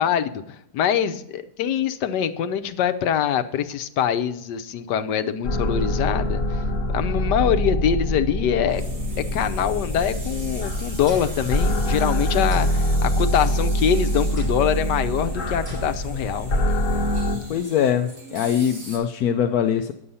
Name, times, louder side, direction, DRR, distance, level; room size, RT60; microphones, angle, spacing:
voice 1, 0.0-6.4 6.9-8.8 9.3-16.5, left 9 dB, 90° left, 9 dB, 1.4 m, -24 dB
sound 1, 5.4-17.4, equal, 50° left, 1.7 m, -24 dB
sound 2, 8.7-19.0, right 2 dB, 80° right, 3.3 m, -41 dB
sound 3, 11.1-12.1 12.5-13.8 14.4-14.9 15.7-16.3, left 3 dB, 5° left, 4.6 m, -38 dB
voice 2, 17.5-19.9, left 9 dB, 70° left, 6 dB, 1.0 m, -22 dB
9.9 x 7.7 x 5.5 m, 0.78 s
omnidirectional pair, 1.8 m